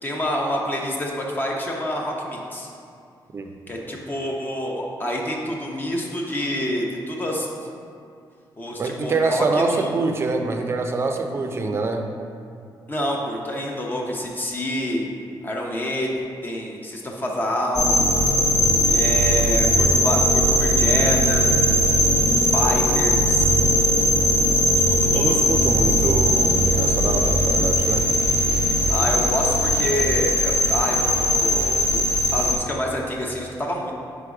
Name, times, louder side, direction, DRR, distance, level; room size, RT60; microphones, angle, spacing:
voice 1, 0.0-2.7 3.7-7.5 8.6-10.0 12.9-15.1 15.4-16.1 16.4-18.0 18.9-21.5 22.3-23.5 24.7-25.4 28.9-32.0 32.3-33.9, equal, 25° left, -1 dB, 0.6 m, -27 dB
voice 2, 8.8-12.0 19.0-19.2 25.1-28.1, right 3 dB, 30° right, 5 dB, 0.5 m, -25 dB
sound 1, 17.7-32.5, equal, 50° left, 0.9 m, -19 dB
5.1 x 5.0 x 4.8 m, 2.4 s
wide cardioid pair, 165°, 8 cm